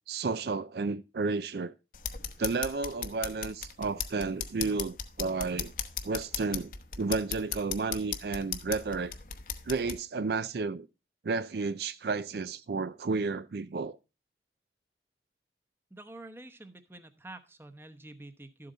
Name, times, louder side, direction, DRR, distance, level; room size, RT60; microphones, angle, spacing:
voice 1, 0.0-1.7 2.4-5.7 6.0-9.1 9.7-10.9 11.2-14.0, right 4 dB, 65° right, 0.4 m, -32 dB
sound 1, 1.9-10.0, left 7 dB, 50° left, 0.9 m, -38 dB
voice 2, 15.9-18.7, right 2 dB, 15° right, 0.9 m, -48 dB
13.0 x 7.7 x 3.9 m
head